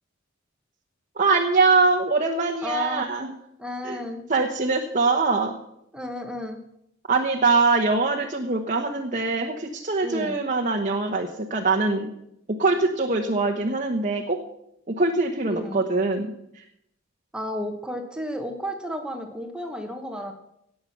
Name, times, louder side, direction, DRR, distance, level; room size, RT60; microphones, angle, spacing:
voice 1, 1.2-3.3 3.8-4.0 4.3-5.5 7.1-12.1 12.5-14.4 14.9-16.6, right 3 dB, 40° right, 2 dB, 1.1 m, -23 dB
voice 2, 2.6-3.1 3.6-4.2 5.9-6.6 10.0-10.4 15.5-15.8 17.3-20.3, left 1 dB, 5° right, 5 dB, 1.2 m, -32 dB
17.5 x 7.7 x 6.0 m, 0.79 s
head